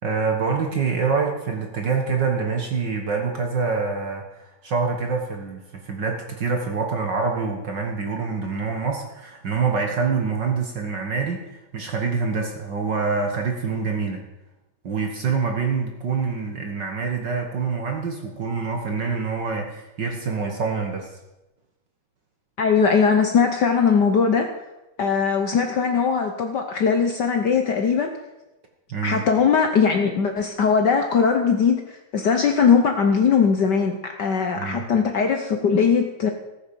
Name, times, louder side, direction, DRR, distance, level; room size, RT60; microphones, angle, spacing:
voice 1, 0.0-14.2 14.8-21.1 28.9-29.2 34.5-34.9, right 5 dB, 45° right, 3 dB, 1.6 m, -26 dB
voice 2, 22.6-24.5 25.0-28.1 29.0-36.3, left 6 dB, 90° left, 5 dB, 0.9 m, -20 dB
14.5 x 8.7 x 6.9 m, 0.98 s
omnidirectional pair, 3.3 m